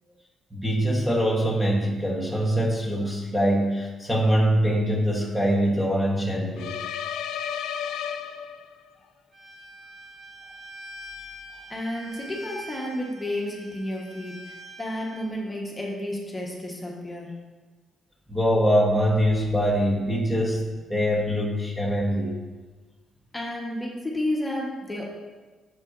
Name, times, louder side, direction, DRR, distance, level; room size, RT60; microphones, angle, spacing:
voice 1, 0.5-6.7 18.3-22.3, equal, 10° right, -3 dB, 1.2 m, -23 dB
sound 1, 6.6-8.9, left 8 dB, 90° left, 0.3 m, -32 dB
Bowed string instrument, 9.3-15.3, equal, 45° right, 2.1 m, -44 dB
voice 2, 11.7-17.4 23.3-25.1, left 1 dB, 15° left, -2 dB, 1.2 m, -31 dB
7.2 x 6.3 x 2.6 m, 1.3 s
cardioid pair, 90°, 0 cm